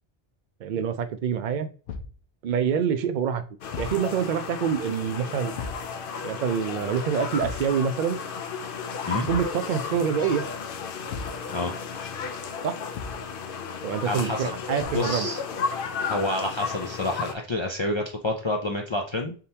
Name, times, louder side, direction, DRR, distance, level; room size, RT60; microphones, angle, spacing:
voice 1, 0.6-1.7 2.4-3.4 3.8-5.5 6.2-8.2 9.1-10.4 12.6-12.7 13.8-15.3, right 7 dB, 55° right, 10 dB, 0.6 m, -26 dB
Thump thud, 1.9-2.2 3.7-4.1 5.6-5.9 7.4-7.8 9.2-9.6 11.1-11.4 12.9-13.3 14.8-15.1, left 4 dB, 90° left, 0.9 m, -36 dB
sound 1, 3.6-17.3, left 5 dB, 65° left, 0.7 m, -34 dB
voice 2, 14.0-14.5 14.9-15.4 16.0-19.4, left 2 dB, 45° left, 2 dB, 0.4 m, -28 dB
4.2 x 3.7 x 2.7 m, 0.38 s
omnidirectional pair, 1.1 m